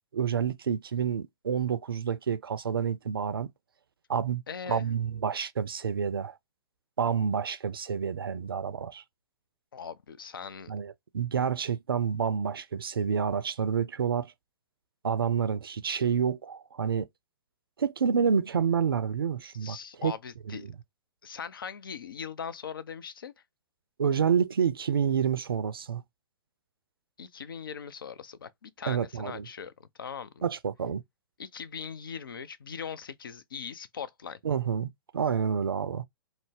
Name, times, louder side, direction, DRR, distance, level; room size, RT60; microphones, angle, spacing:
voice 1, 0.1-3.5 4.1-4.4 4.7-6.4 7.0-9.0 10.7-14.3 15.0-17.1 17.8-20.1 20.5-20.8 24.0-26.0 28.8-29.5 30.4-31.0 34.4-36.0, right 7 dB, 70° right, 0.4 m, -28 dB
voice 2, 4.5-4.9 9.7-10.7 19.6-20.7 21.2-23.3 27.2-30.5 31.4-34.4, left 7 dB, 65° left, 0.4 m, -40 dB
2.5 x 2.0 x 3.5 m
figure-of-eight pair, 110°, 13 cm